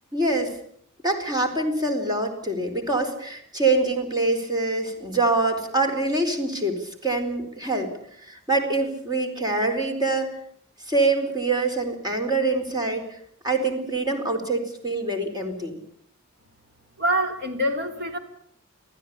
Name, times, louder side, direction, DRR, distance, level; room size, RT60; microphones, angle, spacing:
voice 1, 0.1-0.5 1.0-7.9 8.2-10.4 10.8-13.0 13.4-15.8, right 2 dB, 20° right, 5 dB, 4.4 m, -25 dB
voice 2, 17.0-18.2, right 1 dB, 50° right, 6 dB, 3.6 m, -25 dB
27.0 x 15.5 x 8.5 m, 0.68 s
head